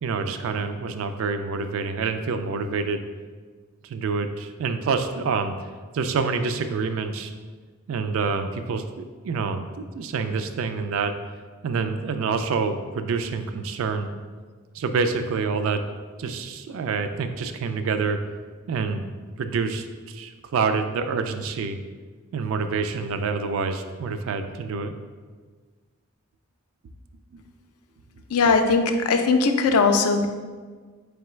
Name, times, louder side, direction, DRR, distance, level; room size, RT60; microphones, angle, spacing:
voice 1, 0.0-3.0 3.8-5.5 5.9-7.3 7.9-11.1 11.6-14.1 14.7-15.8 16.2-18.2 18.7-19.0 19.4-21.8 22.3-24.9 27.3-27.4 28.5-28.6, right 4 dB, 65° right, 8 dB, 0.3 m, -27 dB
voice 2, 28.3-30.3, left 4 dB, 90° left, 6 dB, 0.4 m, -19 dB
3.8 x 3.4 x 3.1 m, 1.5 s
head